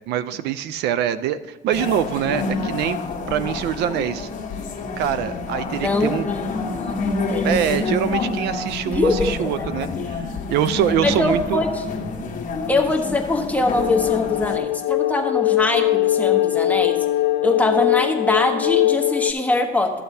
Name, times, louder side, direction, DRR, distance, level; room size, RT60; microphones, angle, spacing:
voice 1, 0.0-3.0 3.3-4.3 5.0-6.3 7.4-11.6, right 10 dB, 80° right, 14 dB, 0.4 m, -24 dB
sound 1, 1.7-14.6, left 3 dB, 50° left, 1.2 m, -28 dB
voice 2, 5.8-7.9 8.9-9.7 11.0-11.8 12.7-17.0 17.4-19.9, left 2 dB, 10° left, 1 dB, 1.1 m, -23 dB
sound 2, 13.7-19.3, left 15 dB, 75° left, 0.4 m, -21 dB
13.0 x 7.7 x 2.7 m, 1.3 s
cardioid pair, 110°, 17 cm